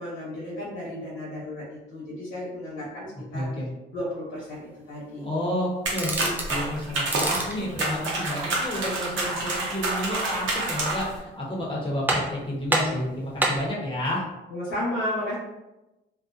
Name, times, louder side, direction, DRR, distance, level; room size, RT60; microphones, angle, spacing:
voice 1, 0.0-3.5 3.9-5.4 14.5-15.3, left 1 dB, 85° left, -7 dB, 0.9 m, -33 dB
voice 2, 3.3-3.7 5.2-14.2, left 1 dB, 25° left, -4 dB, 0.9 m, -30 dB
sound 1, 5.9-11.2, right 2 dB, 75° right, 0.8 m, -28 dB
sound 2, 6.0-6.5 7.0-7.6 10.6-11.1 11.5-11.6 12.1-12.4 12.7-13.7, right 1 dB, 10° right, 0.4 m, -27 dB
2.4 x 2.2 x 2.5 m, 0.98 s
cardioid pair, 90°, 20 cm